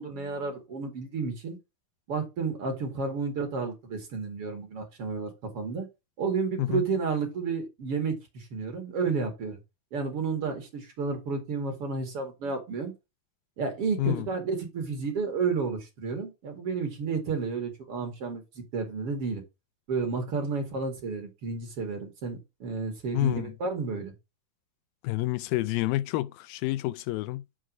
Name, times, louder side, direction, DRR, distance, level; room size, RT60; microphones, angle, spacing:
voice 1, 0.0-1.6 2.1-5.9 6.2-9.6 9.9-12.9 13.6-19.4 19.9-24.1, right 4 dB, 45° right, 2.7 m, -31 dB
voice 2, 23.1-23.5 25.0-27.4, left 16 dB, 85° left, 2.4 m, -28 dB
6.4 x 4.9 x 6.2 m
omnidirectional pair, 4.1 m